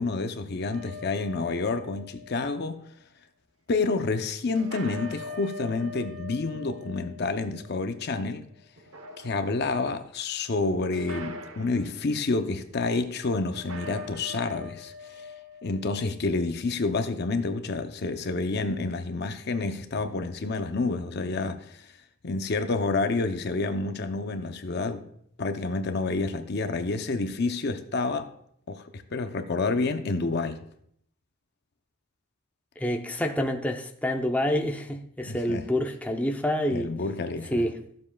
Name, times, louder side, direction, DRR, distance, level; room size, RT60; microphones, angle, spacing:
voice 1, 0.0-2.8 3.7-8.5 9.2-15.2 15.6-21.9 22.2-25.1 25.4-28.3 28.7-30.6 35.3-35.6 36.7-37.6, left 3 dB, 50° left, 0.6 m, -29 dB
sound 1, 0.7-2.8 4.5-8.3 8.8-9.8 10.9-12.0 13.5-16.2, left 3 dB, 85° right, 0.9 m, -43 dB
voice 2, 32.8-37.0 37.5-37.8, left 1 dB, 5° left, 0.6 m, -27 dB
14.0 x 7.3 x 2.3 m
head